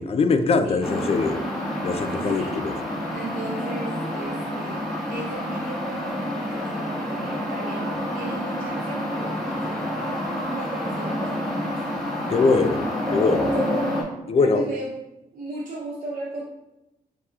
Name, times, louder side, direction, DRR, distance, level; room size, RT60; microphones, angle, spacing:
voice 1, 0.0-1.4 1.8-2.7 12.3-12.8 13.1-13.5 14.3-14.7, left 4 dB, 40° left, 9 dB, 0.4 m, -22 dB
sound 1, 0.8-14.0, equal, 5° left, 1.4 m, -28 dB
voice 2, 2.1-2.5 3.1-9.4 9.6-11.7 13.5-13.9 14.3-15.0 15.3-16.4, right 2 dB, 60° right, -4 dB, 0.7 m, -36 dB
6.6 x 2.9 x 2.4 m, 0.94 s
cardioid pair, 100°, 15 cm